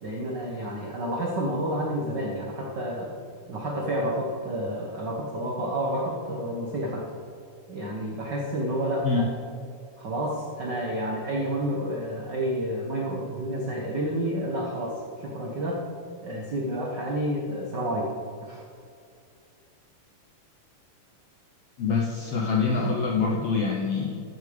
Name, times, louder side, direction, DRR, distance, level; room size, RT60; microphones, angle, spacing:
voice 1, 0.0-3.1 3.5-7.1 7.7-9.3 10.0-15.8 16.2-18.1 18.4-18.6, right 1 dB, 70° right, -1 dB, 1.0 m, -30 dB
voice 2, 21.8-24.2, left 4 dB, 70° left, 0 dB, 1.5 m, -25 dB
14.5 x 6.9 x 5.1 m, 2.4 s
omnidirectional pair, 3.8 m